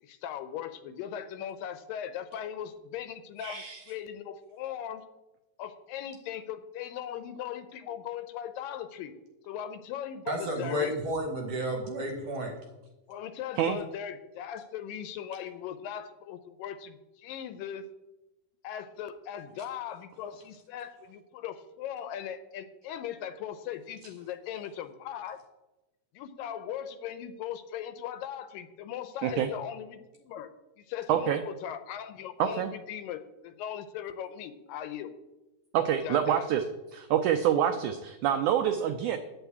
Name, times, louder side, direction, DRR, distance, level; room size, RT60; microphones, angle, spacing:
voice 1, 0.0-5.0 5.6-9.1 9.5-10.9 13.1-17.9 18.6-25.4 26.1-30.5 30.8-35.1 36.0-36.5, left 9 dB, 80° left, 11 dB, 2.2 m, -39 dB
voice 2, 3.4-3.8 13.6-13.8 29.2-29.5 31.1-31.4 32.4-32.7 35.7-36.6 36.9-39.2, right 10 dB, 85° right, 8 dB, 1.7 m, -26 dB
voice 3, 10.3-12.5, equal, 55° right, 3 dB, 1.9 m, -31 dB
9.2 x 7.0 x 8.3 m, 1.0 s
omnidirectional pair, 4.2 m